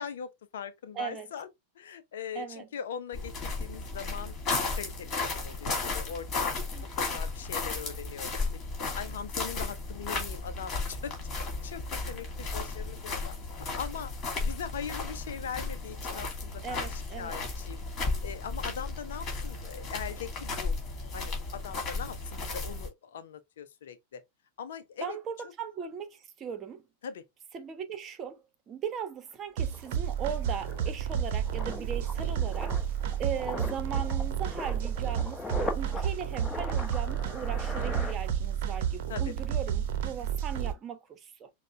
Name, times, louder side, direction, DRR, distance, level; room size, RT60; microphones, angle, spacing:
voice 1, 0.0-1.5 1.8-4.3 4.7-6.5 7.1-8.6 9.0-11.1 11.6-14.1 14.4-17.8 18.2-20.7 21.1-24.2 24.6-25.2 27.0-27.2 39.1-39.3, left 7 dB, 60° left, 0.7 m, -41 dB
voice 2, 0.9-1.3 2.3-2.7 6.7-6.8 16.6-17.4 25.0-26.8 27.5-28.4 28.7-32.8 33.2-41.5, right 7 dB, 25° right, 1.1 m, -38 dB
sound 1, 3.1-22.9, left 3 dB, 30° left, 2.6 m, -34 dB
sound 2, 29.3-29.4 29.7-38.8 39.0-39.3, left 3 dB, 10° left, 1.2 m, -41 dB
sound 3, 29.6-40.7, right 9 dB, 50° right, 0.9 m, -31 dB
6.5 x 2.4 x 3.3 m
figure-of-eight pair, 90°, 0 cm